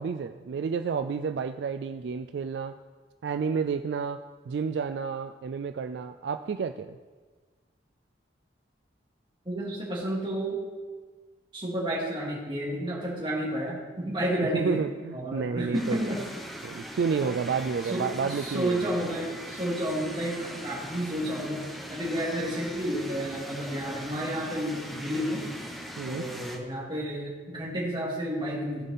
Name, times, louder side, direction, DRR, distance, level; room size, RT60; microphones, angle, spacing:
voice 1, 0.0-2.7 3.2-4.2 4.5-7.0 14.5-16.1 16.6-18.9 26.0-26.2, right 5 dB, 70° right, 8 dB, 0.3 m, -30 dB
voice 2, 9.4-10.6 11.5-14.8 15.1-16.2 17.8-21.6 21.9-25.4 26.0-28.9, right 1 dB, 25° right, -5 dB, 2.6 m, -31 dB
sound 1, 15.7-26.6, equal, ahead, 0.9 m, -41 dB
15.5 x 5.3 x 4.2 m, 1.4 s
head